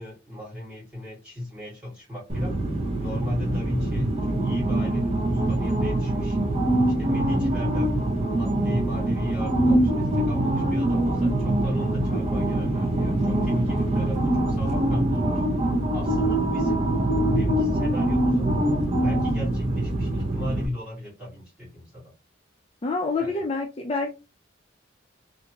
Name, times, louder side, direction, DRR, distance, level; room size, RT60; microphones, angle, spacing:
voice 1, 0.0-2.6 3.0-6.4 7.0-8.0 8.3-15.4 15.9-16.9 17.3-18.5 19.0-22.1 23.2-23.4, left 1 dB, 5° right, 2.1 m, -35 dB
sound 1, 2.3-20.7, right 1 dB, 30° right, 0.7 m, -24 dB
voice 2, 22.8-24.1, left 3 dB, 30° left, 0.4 m, -27 dB
3.4 x 2.5 x 2.9 m
head